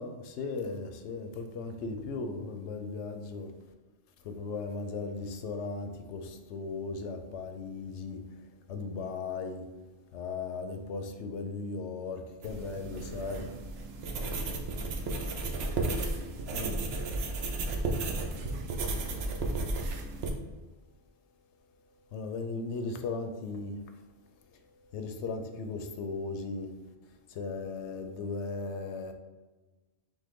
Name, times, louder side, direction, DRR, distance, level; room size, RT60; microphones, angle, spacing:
voice 1, 0.0-3.5 4.2-8.2 8.7-9.7 10.1-13.5 16.5-16.8 22.1-23.8 24.9-26.7 27.3-29.1, left 4 dB, 80° left, 0.9 m, -37 dB
sound 1, 12.4-20.3, right 2 dB, 70° right, 0.8 m, -33 dB
6.2 x 2.2 x 3.5 m
omnidirectional pair, 1.2 m